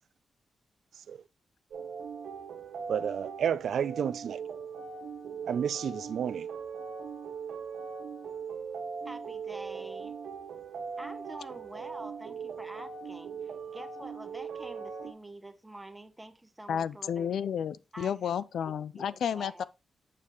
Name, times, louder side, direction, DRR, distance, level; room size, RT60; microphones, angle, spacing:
sound 1, 1.7-15.1, right 6 dB, 85° right, 1.7 m, -40 dB
voice 1, 2.9-4.4 5.4-6.5, right 8 dB, 70° right, 0.4 m, -31 dB
voice 2, 9.0-10.2 11.0-17.3 17.9-18.3 18.7-19.6, right 2 dB, 10° right, 0.8 m, -47 dB
voice 3, 16.7-19.6, left 8 dB, 80° left, 0.4 m, -32 dB
7.2 x 6.8 x 3.1 m
wide cardioid pair, 175°, 0 cm